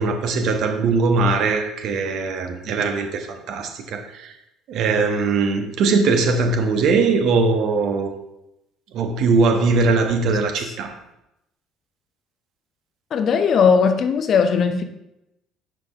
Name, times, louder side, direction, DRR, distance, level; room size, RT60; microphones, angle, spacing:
voice 1, 0.0-4.3 4.7-8.1 8.9-11.0, right 4 dB, 50° right, 6 dB, 0.8 m, -20 dB
voice 2, 13.1-14.8, left 6 dB, 45° left, 7 dB, 0.6 m, -18 dB
9.4 x 5.0 x 2.4 m, 0.87 s
figure-of-eight pair, 55°, 0 cm